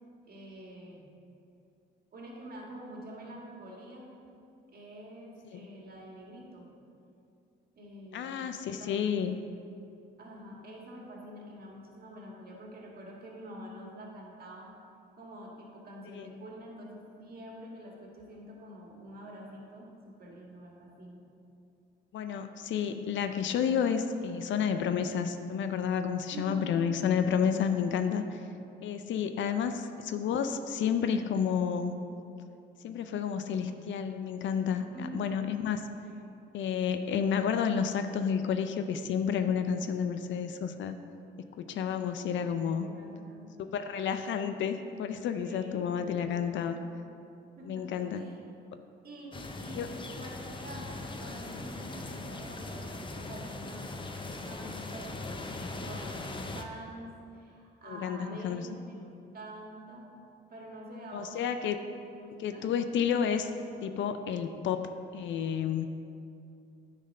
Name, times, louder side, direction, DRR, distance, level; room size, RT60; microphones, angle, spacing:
voice 1, 0.3-1.0 2.1-4.1 4.7-6.7 7.8-9.1 10.2-14.7 15.2-21.2 26.3-26.9 29.5-29.9 34.9-35.4 36.0-36.3 42.8-43.5 45.4-46.7 47.6-48.4 49.0-49.8 50.2-60.1 60.5-61.4 61.7-61.8 62.1-62.7, right 1 dB, 50° right, -2 dB, 1.8 m, -46 dB
voice 2, 8.1-9.4 16.2-16.3 22.1-28.4 28.8-32.0 32.8-35.8 36.5-40.9 41.6-42.9 43.7-46.8 47.7-48.2 49.8-49.9 57.9-58.7 61.1-61.8 62.4-63.5 63.8-65.9, left 7 dB, 70° left, 8 dB, 0.5 m, -30 dB
sound 1, 49.3-56.6, left 2 dB, 25° left, 0.7 m, -40 dB
9.8 x 4.0 x 5.4 m, 2.6 s
cardioid pair, 90°, 20 cm